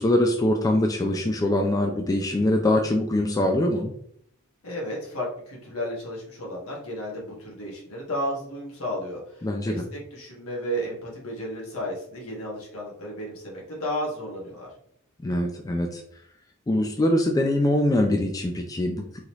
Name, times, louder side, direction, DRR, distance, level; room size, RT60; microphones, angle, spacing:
voice 1, 0.0-3.9 9.4-9.8 15.2-16.0 16.7-19.2, left 1 dB, 15° left, 2 dB, 0.3 m, -23 dB
voice 2, 4.6-14.7, equal, 70° left, -3 dB, 1.5 m, -33 dB
3.9 x 2.8 x 3.1 m, 0.67 s
head